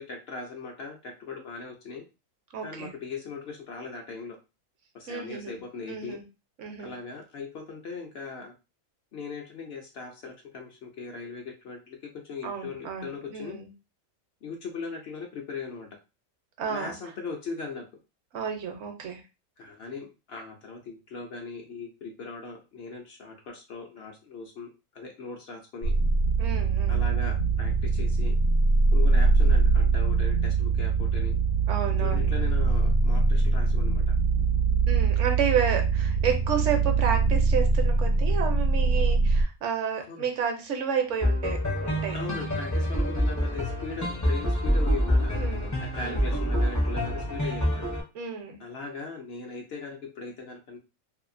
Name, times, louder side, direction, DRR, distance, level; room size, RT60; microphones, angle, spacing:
voice 1, 0.0-2.0 2.6-4.4 4.9-6.2 6.8-8.5 9.1-12.0 12.2-13.6 14.4-15.9 16.7-17.8 19.6-24.7 24.9-25.9 26.9-28.3 28.9-31.3 32.0-34.1 40.1-40.3 42.1-45.3 45.8-47.8 48.6-50.8, left 4 dB, 60° left, 2 dB, 0.7 m, -39 dB
voice 2, 2.5-2.9 5.1-5.6 5.9-6.2 6.6-6.9 12.4-13.7 16.6-17.1 18.3-19.2 26.4-27.0 31.7-32.3 34.9-42.2 45.3-46.3 48.1-48.6, right 6 dB, 70° right, 5 dB, 0.9 m, -31 dB
sound 1, 25.8-39.4, right 4 dB, 80° left, 1.0 m, -23 dB
sound 2, 41.2-48.0, equal, 25° left, 0.4 m, -26 dB
2.7 x 2.4 x 2.5 m, 0.28 s
omnidirectional pair, 1.4 m